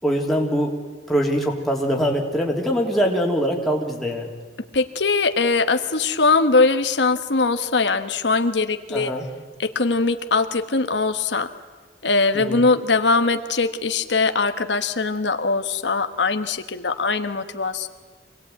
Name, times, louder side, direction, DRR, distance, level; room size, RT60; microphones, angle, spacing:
voice 1, 0.0-0.8 1.1-4.3 8.9-9.2 12.3-12.6, equal, ahead, -1 dB, 3.2 m, -23 dB
voice 2, 4.7-9.2 9.6-11.5 12.0-17.9, left 3 dB, 85° left, 9 dB, 1.3 m, -21 dB
25.5 x 18.5 x 9.3 m, 1.5 s
head